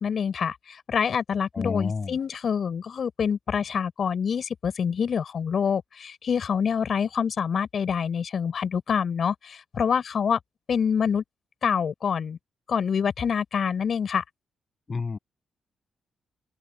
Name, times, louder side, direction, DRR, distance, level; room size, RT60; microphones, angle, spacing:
voice 1, 0.0-10.4 10.7-11.2 11.6-12.4 12.7-14.2, left 7 dB, 60° left, 6.3 m, -26 dB
voice 2, 1.5-2.1 14.9-15.2, left 4 dB, 40° left, 6.5 m, -29 dB
open air
hypercardioid pair, 45°, 0 cm